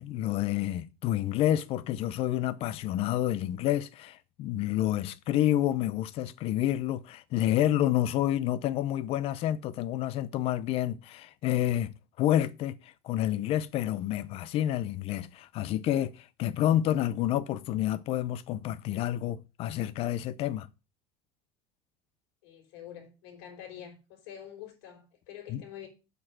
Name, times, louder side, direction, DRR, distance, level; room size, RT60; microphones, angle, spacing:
voice 1, 0.0-20.7 25.5-25.6, left 12 dB, 45° left, 0.7 m, -29 dB
voice 2, 22.4-25.9, left 10 dB, 75° left, 3.9 m, -46 dB
7.9 x 5.0 x 6.2 m
cardioid pair, 145°, 14 cm